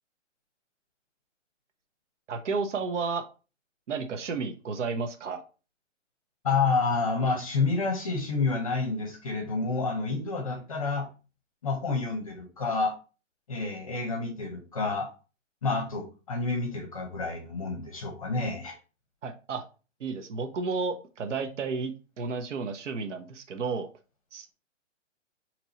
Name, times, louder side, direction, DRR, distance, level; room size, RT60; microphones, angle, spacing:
voice 1, 2.3-3.2 3.9-5.4 19.2-19.6 20.0-23.9 24.3-24.5, right 4 dB, 70° right, 7 dB, 1.0 m, -32 dB
voice 2, 6.4-11.1 11.6-12.9 13.5-15.1 15.6-18.8, left 4 dB, 30° left, 3 dB, 0.7 m, -29 dB
4.3 x 3.1 x 4.0 m, 0.34 s
hypercardioid pair, 175°, 38 cm